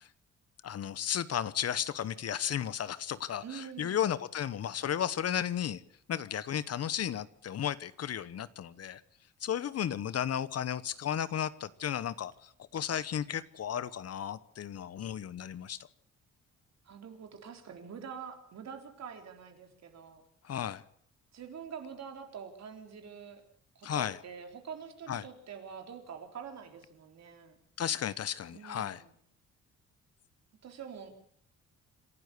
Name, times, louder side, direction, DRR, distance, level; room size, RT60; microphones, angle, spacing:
voice 1, 0.6-5.8 6.1-9.0 9.4-15.8 20.4-20.8 23.8-24.2 25.1-25.2 27.8-29.0, left 9 dB, 55° left, 1.0 m, -34 dB
voice 2, 3.4-4.1 16.9-20.2 21.3-23.4 23.8-27.6 28.5-29.1 30.6-31.3, right 7 dB, 60° right, 3.9 m, -46 dB
26.5 x 12.0 x 8.4 m
cardioid pair, 90°, 30 cm